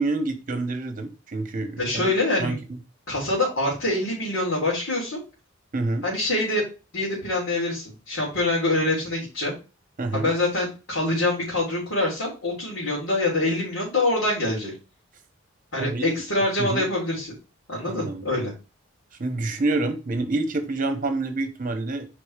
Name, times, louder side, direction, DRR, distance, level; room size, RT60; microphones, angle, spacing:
voice 1, 0.0-2.1 2.4-2.6 5.7-6.0 10.0-10.3 15.8-16.1 16.6-16.8 17.9-18.3 19.2-22.1, right 2 dB, 40° right, 1.0 m, -27 dB
voice 2, 1.8-2.6 3.1-5.2 6.0-6.6 6.9-9.5 10.1-14.7 15.7-17.3 17.7-18.5, left 2 dB, 80° left, 3.5 m, -25 dB
5.1 x 4.2 x 5.0 m
head